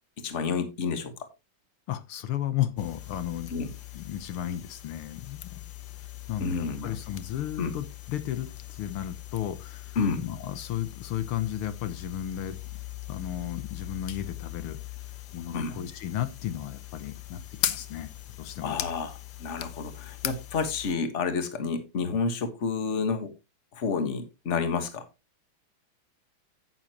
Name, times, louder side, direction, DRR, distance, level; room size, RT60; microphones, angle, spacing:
voice 1, 0.2-1.1 3.5-3.7 6.4-7.0 7.6-7.7 9.9-10.2 15.5-15.7 18.6-23.3 23.7-25.0, left 5 dB, 35° left, 1.6 m, -30 dB
voice 2, 1.9-3.5 3.9-5.6 6.3-12.6 13.1-14.8 15.3-18.1 18.4-18.8, left 11 dB, 80° left, 1.9 m, -34 dB
sound 1, 2.8-21.0, left 12 dB, 60° left, 1.2 m, -40 dB
10.0 x 9.1 x 3.0 m
omnidirectional pair, 2.4 m